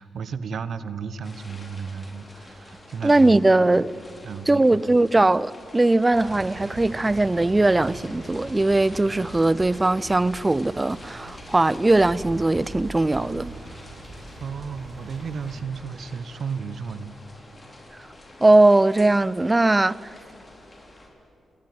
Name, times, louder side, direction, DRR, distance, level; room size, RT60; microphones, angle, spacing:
voice 1, 0.0-3.6 4.2-5.0 14.4-17.1, right 6 dB, 65° right, 1.2 m, -34 dB
sound 1, 1.2-21.1, left 1 dB, 30° left, 5.5 m, -47 dB
voice 2, 3.0-3.9 4.5-13.5 18.4-20.1, right 2 dB, 25° right, 0.6 m, -20 dB
sound 2, 6.1-15.6, right 2 dB, 50° right, 5.5 m, -41 dB
27.0 x 19.0 x 9.7 m
supercardioid pair, 40°, 0 cm